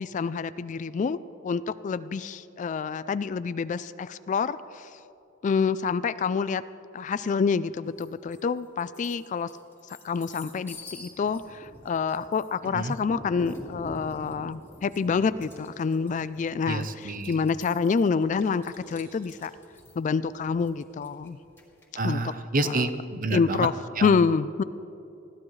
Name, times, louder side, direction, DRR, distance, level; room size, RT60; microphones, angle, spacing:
voice 1, 0.0-4.9 5.4-6.6 6.9-9.5 10.0-19.5 20.0-21.4 22.0-22.2 22.6-22.9 23.3-23.7 24.0-24.6, left 5 dB, 40° left, 16 dB, 0.3 m, -27 dB
sound 1, 8.0-8.4 8.8-22.0, left 1 dB, 10° left, 2.2 m, -46 dB
voice 2, 16.7-17.4 22.0-23.7 24.0-24.2, right 2 dB, 45° right, 9 dB, 0.8 m, -29 dB
20.5 x 15.0 x 3.2 m, 2.8 s
head